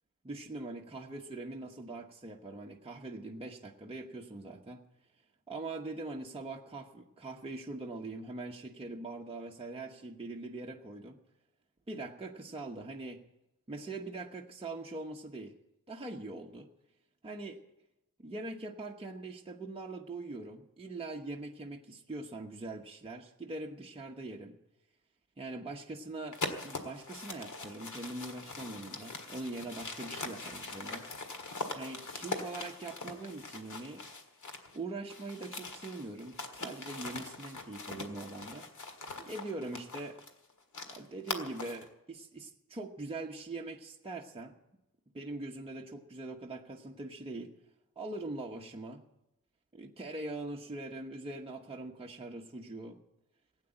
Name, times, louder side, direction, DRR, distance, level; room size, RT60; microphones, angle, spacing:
voice 1, 0.2-4.8 5.5-11.2 11.9-13.2 13.7-15.6 15.9-16.7 17.2-17.6 18.2-24.5 25.4-31.1 31.7-34.1 34.7-40.2 40.9-44.6 45.1-47.5 48.0-49.0 49.7-53.0, right 2 dB, 15° right, -1 dB, 1.0 m, -42 dB
sound 1, 26.3-34.8 35.1-41.9, left 3 dB, 65° left, 1.8 m, -42 dB
16.5 x 9.0 x 8.7 m, 0.91 s
wide cardioid pair, 145°, 33 cm